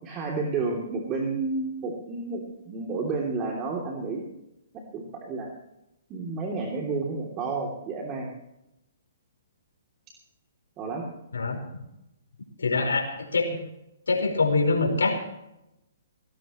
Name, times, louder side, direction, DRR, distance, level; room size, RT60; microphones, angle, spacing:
voice 1, 0.0-4.2 4.9-5.5 6.1-8.3 10.8-11.0, right 4 dB, 25° right, 0 dB, 3.0 m, -31 dB
voice 2, 12.6-13.6 14.1-15.2, left 3 dB, 90° left, 3 dB, 4.8 m, -24 dB
19.5 x 17.5 x 3.1 m, 0.87 s
hypercardioid pair, 140°, 0 cm